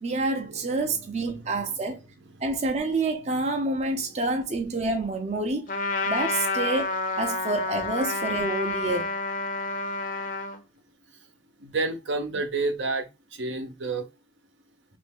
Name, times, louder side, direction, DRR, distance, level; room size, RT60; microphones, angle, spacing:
voice 1, 0.0-2.0 2.4-5.7 6.1-9.1, right 2 dB, 35° right, 0.5 m, -28 dB
Trumpet, 5.7-10.6, left 3 dB, 45° left, 0.6 m, -29 dB
voice 2, 11.6-13.1 13.3-14.0, right 3 dB, 75° right, 0.7 m, -29 dB
3.1 x 2.5 x 3.5 m
head